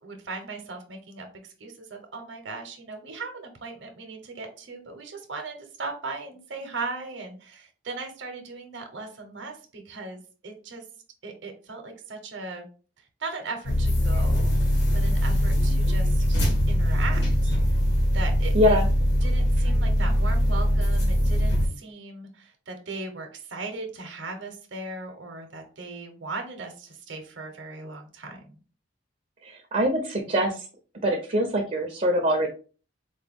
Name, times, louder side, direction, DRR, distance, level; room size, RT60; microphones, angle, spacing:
voice 1, 0.0-1.3 1.6-10.8 11.2-12.6 13.0-14.5 14.9-17.5 18.1-18.8 19.2-28.6, right 3 dB, 70° right, 4 dB, 0.7 m, -38 dB
sound 1, 13.6-21.7, equal, 60° left, 1.1 m, -22 dB
voice 2, 18.5-18.9 29.4-30.6 31.0-32.5, equal, 40° right, 2 dB, 0.5 m, -23 dB
4.0 x 2.2 x 3.4 m, 0.38 s
head